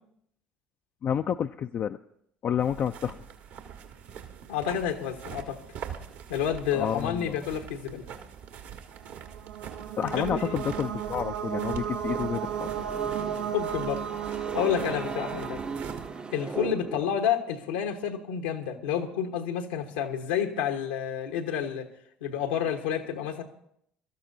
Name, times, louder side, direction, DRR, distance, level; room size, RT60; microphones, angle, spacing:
voice 1, 1.0-2.0 2.4-3.2 6.7-7.4 10.0-12.7, left 8 dB, 45° left, 6 dB, 0.4 m, -29 dB
sound 1, 2.6-16.1, right 8 dB, 65° right, 1.6 m, -43 dB
voice 2, 4.5-5.6 6.3-8.0 10.0-10.6 13.5-14.0 14.3-15.6 16.3-21.9 22.2-23.4, left 8 dB, 80° left, 4 dB, 1.2 m, -30 dB
sound 2, 9.0-16.8, right 9 dB, 85° right, 0.7 m, -35 dB
sound 3, 12.0-17.3, right 3 dB, 25° right, 0.7 m, -38 dB
24.0 x 13.0 x 2.7 m, 0.72 s
hypercardioid pair, 60°, 5 cm